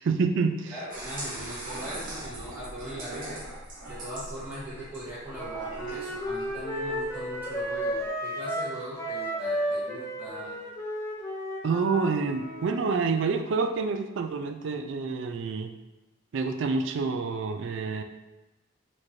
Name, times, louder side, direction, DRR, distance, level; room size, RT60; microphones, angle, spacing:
voice 1, 0.0-0.7 11.6-15.7 16.3-18.0, right 4 dB, 60° right, 6 dB, 0.3 m, -27 dB
voice 2, 0.6-3.4 3.9-10.6, right 1 dB, 10° right, -10 dB, 1.1 m, -40 dB
sound 1, 0.9-8.1, right 1 dB, 40° right, 1.0 m, -41 dB
Wind instrument woodwind instrument, 5.3-12.7, equal, 15° left, 0.6 m, -33 dB
4.2 x 3.1 x 2.7 m, 1.0 s
head